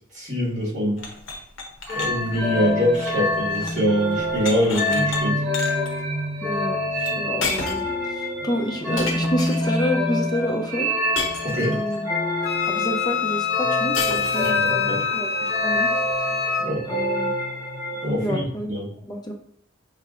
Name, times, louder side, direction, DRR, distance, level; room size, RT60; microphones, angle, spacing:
voice 1, 0.1-1.0 1.9-5.4 11.4-11.8 14.4-15.0 16.6-16.8 18.0-18.9, equal, 40° right, -7 dB, 1.6 m, -24 dB
sound 1, 1.0-3.9 4.1-5.2 5.5-5.9 7.1-7.2 7.4-8.0 9.0-9.8 11.2-12.0 13.9-14.7, left 4 dB, 75° left, 0.8 m, -32 dB
sound 2, 1.9-18.3, left 1 dB, 10° right, 1.5 m, -26 dB
voice 2, 6.4-10.9 11.6-12.0 12.7-15.9 16.9-17.3 18.2-18.7 19.0-19.3, equal, 20° left, 3 dB, 0.5 m, -29 dB
Wind instrument woodwind instrument, 12.4-16.7, left 6 dB, 60° left, 1.2 m, -26 dB
5.5 x 3.1 x 2.4 m, 0.67 s
head